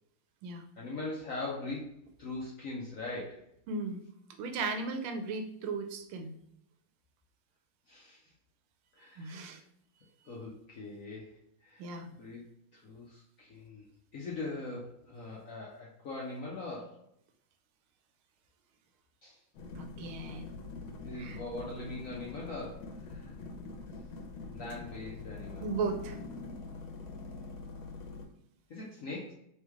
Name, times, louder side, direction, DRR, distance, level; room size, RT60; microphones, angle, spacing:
voice 1, 0.8-3.4 7.9-8.3 9.0-9.6 10.2-11.8 12.1-12.5 12.7-17.0 19.2-19.4 21.0-23.3 24.5-25.6 28.7-29.3, left 2 dB, 60° left, -4 dB, 0.8 m, -41 dB
voice 2, 3.7-4.0 4.4-6.3 9.2-9.6 11.8-12.1 19.7-20.5 21.2-21.4 25.6-26.2, right 4 dB, 85° right, 6 dB, 1.5 m, -36 dB
sound 1, 19.5-28.2, left 3 dB, 90° left, 1.5 m, -44 dB
3.5 x 3.2 x 3.4 m, 0.76 s
omnidirectional pair, 2.3 m